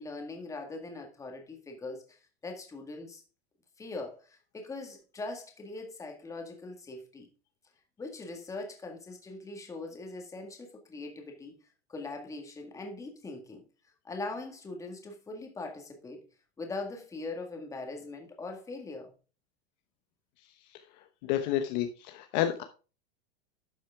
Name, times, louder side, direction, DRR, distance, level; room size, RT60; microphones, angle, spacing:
voice 1, 0.0-2.2 2.4-3.2 3.8-7.3 8.0-11.6 11.9-13.6 14.0-16.3 16.6-19.1, left 3 dB, 10° left, 1.8 m, -41 dB
voice 2, 21.2-22.6, left 11 dB, 45° left, 1.0 m, -29 dB
12.0 x 6.3 x 3.6 m
supercardioid pair, 160°, 32 cm